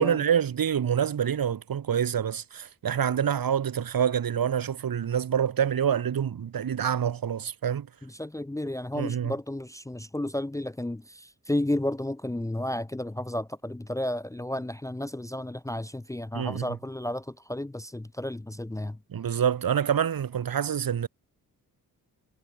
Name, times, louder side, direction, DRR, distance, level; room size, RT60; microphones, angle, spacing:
voice 1, 0.0-7.9 8.9-9.3 16.3-16.7 19.1-21.1, right 8 dB, 65° right, 2.8 m, -26 dB
voice 2, 8.0-19.0, left 1 dB, 10° left, 0.9 m, -32 dB
wide cardioid pair, 150°, 38 cm